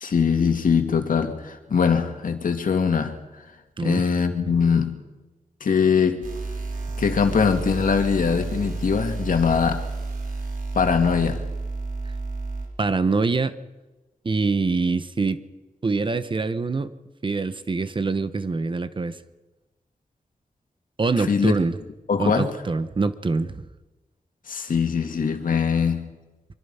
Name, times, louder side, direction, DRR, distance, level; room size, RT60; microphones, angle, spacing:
voice 1, 0.0-3.2 3.8-5.0 5.6-6.3 7.0-9.8 10.7-11.4 21.3-21.5 22.1-22.6 24.5-26.1, left 6 dB, 80° left, 2.4 m, -22 dB
sound 1, 6.2-12.7, right 3 dB, 80° right, 4.3 m, -31 dB
voice 2, 12.8-13.6 14.2-15.4 15.8-16.9 17.2-19.2 21.0-21.8 22.2-23.7, right 3 dB, 35° right, 1.0 m, -24 dB
24.5 x 24.0 x 5.7 m
wide cardioid pair, 145°, 14 cm